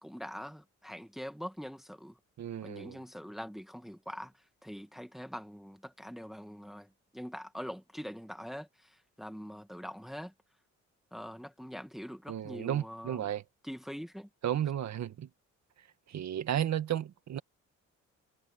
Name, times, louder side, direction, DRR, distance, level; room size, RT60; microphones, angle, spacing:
voice 1, 0.0-2.2 2.6-10.3 11.1-13.3 13.6-14.3, equal, ahead, 1.7 m, -43 dB
voice 2, 2.4-3.0 12.3-13.4 14.4-15.3 16.1-17.4, right 10 dB, 65° right, 1.9 m, -33 dB
cardioid pair, 90°, 30 cm